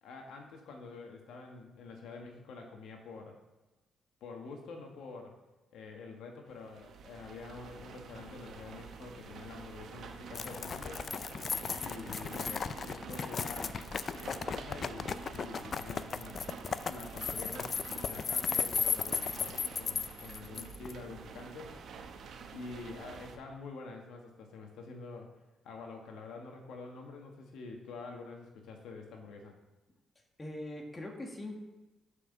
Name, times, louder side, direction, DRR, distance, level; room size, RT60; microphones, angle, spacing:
voice 1, 0.0-3.4 4.2-5.3 5.7-11.0 11.8-13.8 14.1-16.4 16.8-21.7 22.5-25.3 25.6-29.5, left 4 dB, 80° left, 2 dB, 1.5 m, -47 dB
sound 1, 6.5-23.4, right 5 dB, 65° right, 1.0 m, -48 dB
sound 2, 10.3-20.9, left 6 dB, 45° left, 0.4 m, -35 dB
voice 2, 30.4-31.6, left 1 dB, 20° left, 2 dB, 1.6 m, -41 dB
6.6 x 5.6 x 6.6 m, 1.1 s
cardioid pair, 90°, 0 cm